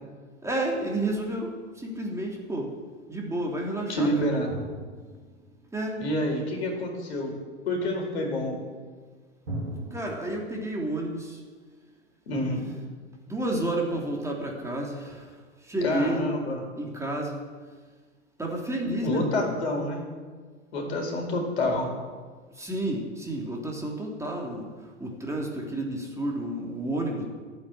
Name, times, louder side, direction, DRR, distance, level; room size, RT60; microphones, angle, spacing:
voice 1, 0.4-1.5 1.8-2.7 3.1-4.1 5.7-6.0 9.9-11.4 13.3-15.3 15.6-16.2 16.8-17.4 18.4-19.5 22.6-24.7 25.0-27.2, right 1 dB, 10° right, -1 dB, 3.1 m, -30 dB
voice 2, 3.9-4.5 6.0-7.3 7.7-8.6 12.3-12.6 15.8-16.6 19.0-20.0 20.7-21.9, left 1 dB, 65° left, 2 dB, 4.6 m, -28 dB
sound 1, 4.5-6.1 9.4-10.1, right 1 dB, 70° right, 4.3 m, -38 dB
15.5 x 9.3 x 7.7 m, 1.5 s
figure-of-eight pair, 90°, 35 cm